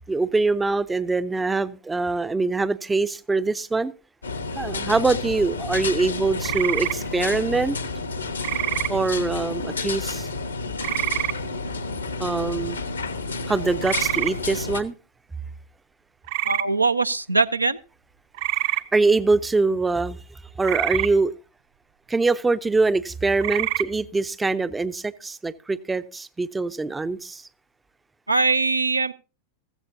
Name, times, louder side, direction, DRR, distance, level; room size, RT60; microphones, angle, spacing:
voice 1, 0.1-3.9 4.6-7.8 8.9-10.3 12.2-12.8 13.5-14.9 18.6-20.2 20.6-21.3 22.1-27.5, right 3 dB, 10° right, 0.5 m, -23 dB
sound 1, 4.2-14.8, left 3 dB, 75° left, 1.1 m, -30 dB
sound 2, 6.4-7.0 8.4-8.9 10.8-11.3 13.8-14.3 16.3-16.6 18.3-18.8 20.6-21.1 23.4-23.8, right 14 dB, 50° right, 0.7 m, -25 dB
voice 2, 16.4-17.8 28.3-29.1, right 3 dB, 85° right, 0.5 m, -21 dB
15.5 x 14.5 x 2.7 m
figure-of-eight pair, 90°, 0 cm